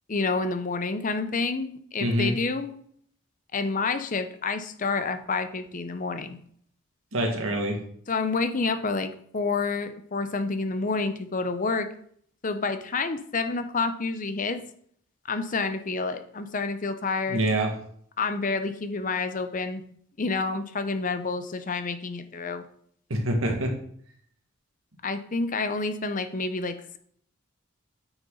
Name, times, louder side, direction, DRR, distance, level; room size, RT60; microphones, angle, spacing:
voice 1, 0.1-2.7 3.5-6.4 8.1-11.9 12.4-14.6 15.3-17.4 18.2-19.8 20.2-22.6 25.0-27.0, left 4 dB, 40° left, 9 dB, 0.7 m, -29 dB
voice 2, 2.0-2.3 7.1-7.8 17.3-17.7 23.1-23.7, right 1 dB, 75° right, 2 dB, 1.9 m, -25 dB
9.4 x 6.0 x 3.9 m, 0.63 s
head